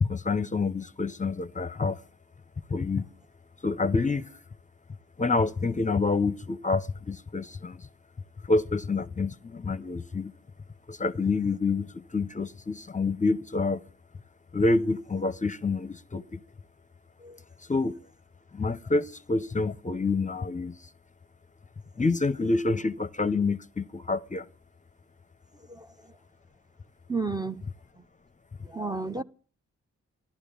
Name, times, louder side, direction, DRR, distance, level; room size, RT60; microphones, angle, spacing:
voice 1, 0.0-2.0 2.7-3.0 3.6-4.3 5.2-7.9 8.5-10.3 10.9-13.8 14.5-16.4 17.7-18.0 18.5-20.8 22.0-24.5, left 3 dB, 25° left, 0.6 m, -27 dB
voice 2, 27.1-27.6 28.7-29.2, right 3 dB, 15° right, 0.6 m, -31 dB
14.5 x 12.0 x 6.9 m
cardioid pair, 75°, 29 cm